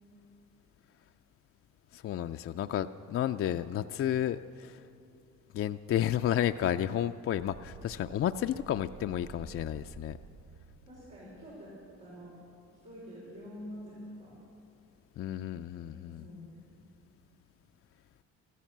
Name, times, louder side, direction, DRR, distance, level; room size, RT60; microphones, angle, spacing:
voice 1, 1.9-4.8 5.5-10.2 15.2-16.2, left 11 dB, 50° left, 8 dB, 0.4 m, -32 dB
sound 1, 7.3-12.0, right 5 dB, 60° right, 0.7 m, -52 dB
voice 2, 10.9-11.7 12.0-12.3 12.8-14.4 15.8-16.6, equal, 90° right, -9 dB, 5.2 m, -47 dB
14.0 x 14.0 x 7.3 m, 2.5 s
cardioid pair, 90°, 30 cm